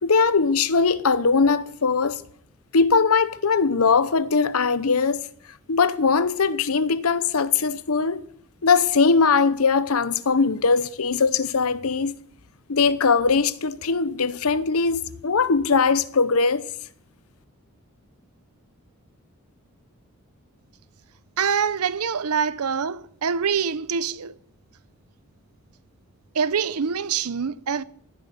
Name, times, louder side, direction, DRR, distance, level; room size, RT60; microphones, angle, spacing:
voice 1, 0.0-2.2 2.7-5.3 5.7-8.2 8.6-12.1 12.7-16.6, left 5 dB, 80° left, 0.8 m, -20 dB
voice 2, 21.4-24.4 26.3-27.8, right 6 dB, 90° right, 0.7 m, -25 dB
15.5 x 10.0 x 7.5 m
head